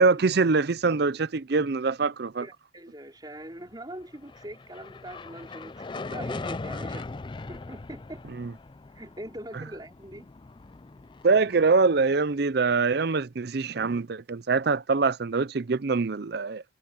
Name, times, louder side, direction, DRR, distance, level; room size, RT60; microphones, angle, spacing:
voice 1, 0.0-2.5 8.3-8.5 11.2-16.6, right 4 dB, 60° right, 0.6 m, -24 dB
voice 2, 2.4-7.1 7.5-8.2 8.9-10.3, right 1 dB, 20° right, 3.2 m, -42 dB
sound 1, 4.0-12.4, left 3 dB, 25° left, 0.4 m, -40 dB
head